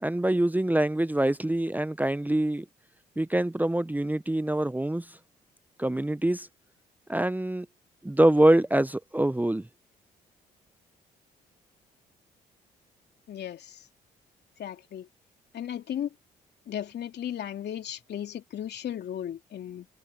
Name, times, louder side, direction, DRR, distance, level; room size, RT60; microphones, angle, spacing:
voice 1, 0.0-2.7 3.2-5.1 5.8-6.5 7.1-7.7 8.0-9.7, right 1 dB, 10° right, 0.9 m, -24 dB
voice 2, 13.3-13.9 14.6-15.1 15.5-16.1 16.7-19.9, left 10 dB, 60° left, 3.0 m, -35 dB
hypercardioid pair, 50°, 19 cm